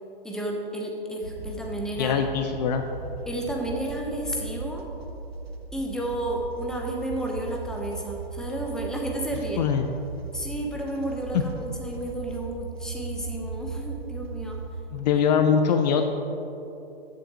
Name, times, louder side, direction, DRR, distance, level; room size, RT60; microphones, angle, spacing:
voice 1, 0.2-2.2 3.3-4.9 5.7-9.6 10.3-14.6, right 1 dB, ahead, 0 dB, 1.0 m, -32 dB
sound 1, 1.2-14.8, right 4 dB, 80° right, 0.9 m, -37 dB
voice 2, 2.0-2.9 9.6-9.9 11.3-11.4 14.9-16.0, left 7 dB, 45° left, 6 dB, 0.6 m, -22 dB
13.5 x 8.0 x 3.0 m, 2.9 s
figure-of-eight pair, 120°, 30 cm